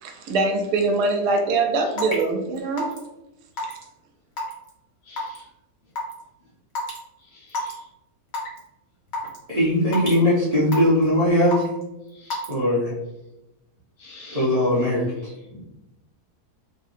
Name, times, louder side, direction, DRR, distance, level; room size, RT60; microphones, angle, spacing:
voice 1, 0.0-2.9 3.6-3.8, right 3 dB, 85° right, 3 dB, 1.2 m, -23 dB
Raindrop / Water tap faucet / Drip, 2.0-2.2 2.8-3.1 3.6-3.8 4.4-4.7 5.2-5.4 6.0-6.1 6.8-7.0 7.5-7.7 8.3-8.6 9.1-9.4 9.9-10.2 10.7-11.0 11.5-11.8 12.3-12.5, left 2 dB, 40° left, 0.7 m, -28 dB
voice 2, 5.0-5.5 7.2-7.8 12.1-12.4 14.0-14.4 15.5-15.6, left 2 dB, 65° left, -6 dB, 1.6 m, -47 dB
voice 3, 9.5-11.6 12.5-12.9 14.3-15.3, left 1 dB, 40° right, -10 dB, 0.5 m, -20 dB
3.1 x 2.8 x 2.5 m, 0.95 s
omnidirectional pair, 1.7 m